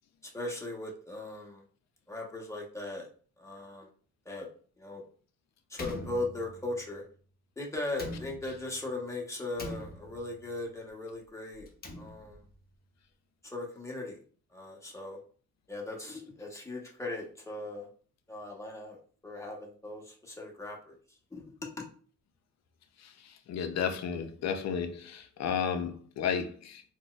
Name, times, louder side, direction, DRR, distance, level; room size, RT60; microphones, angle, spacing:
voice 1, 0.2-1.6 2.1-3.1 3.4-3.9 4.2-4.5 4.8-5.0 5.7-7.0 7.6-11.7 12.0-12.4 13.4-14.2 14.5-15.2 15.7-17.9 18.3-19.0 19.2-21.8, left 2 dB, 10° left, -1 dB, 1.0 m, -38 dB
Slam, 5.7-6.9 7.9-8.8 9.6-10.5 11.6-12.5, left 2 dB, 30° left, 0.8 m, -43 dB
voice 2, 23.5-26.8, left 7 dB, 60° left, 8 dB, 0.6 m, -32 dB
3.9 x 2.3 x 2.3 m, 0.42 s
cardioid pair, 90°, 30 cm